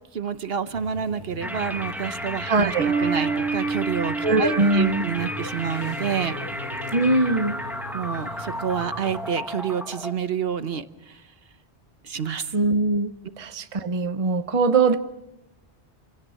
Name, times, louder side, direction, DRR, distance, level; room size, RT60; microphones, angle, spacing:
voice 1, 0.1-6.3 7.9-11.2 12.0-12.5, right 7 dB, 70° right, 11 dB, 1.1 m, -29 dB
sound 1, 0.7-9.4, left 3 dB, 75° left, 3.9 m, -39 dB
sound 2, 1.4-10.1, equal, ahead, 1.1 m, -33 dB
voice 2, 2.5-2.9 4.2-5.0 6.9-7.6 12.5-15.0, right 3 dB, 35° right, 9 dB, 0.9 m, -21 dB
Bass guitar, 2.8-6.3, right 5 dB, 90° right, 1.3 m, -29 dB
27.5 x 17.0 x 6.5 m, 1.1 s
omnidirectional pair, 1.1 m